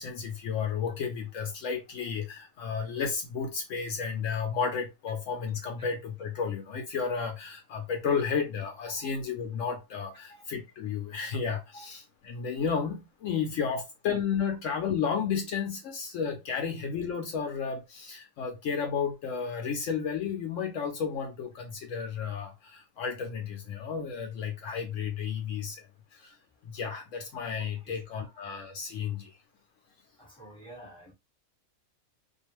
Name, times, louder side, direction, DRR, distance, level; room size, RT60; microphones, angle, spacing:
voice 1, 0.0-26.4 26.6-29.4, left 6 dB, 70° left, 0.9 m, -32 dB
voice 2, 27.8-28.4 30.1-31.1, right 1 dB, 5° left, 1.0 m, -50 dB
2.5 x 2.3 x 2.9 m
omnidirectional pair, 1.4 m